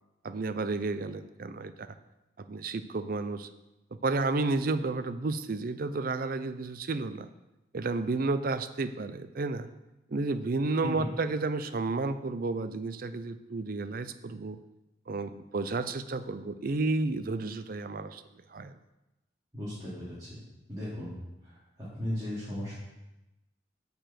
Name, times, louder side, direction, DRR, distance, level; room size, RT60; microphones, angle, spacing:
voice 1, 0.2-1.9 2.4-3.5 3.9-7.3 7.7-9.7 10.1-14.6 15.1-18.2 18.5-18.7, right 3 dB, 50° right, 12 dB, 0.5 m, -31 dB
voice 2, 19.5-20.4 20.7-21.1 21.4-22.7, left 1 dB, 20° right, -11 dB, 2.6 m, -36 dB
6.9 x 6.8 x 5.9 m, 0.98 s
head